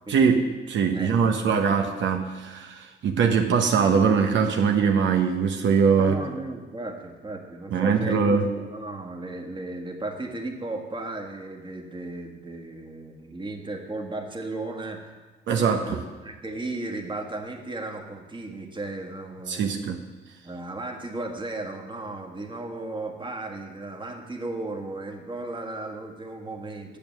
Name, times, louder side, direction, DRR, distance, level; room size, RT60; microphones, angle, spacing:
voice 1, 0.1-6.2 7.7-8.5 15.5-16.0 19.5-20.0, right 6 dB, 70° right, 3 dB, 0.9 m, -22 dB
voice 2, 5.9-15.1 15.5-16.0 16.2-19.9 20.4-27.0, right 2 dB, 25° right, 3 dB, 1.6 m, -35 dB
8.7 x 7.1 x 7.2 m, 1.3 s
cardioid pair, 90°, 20 cm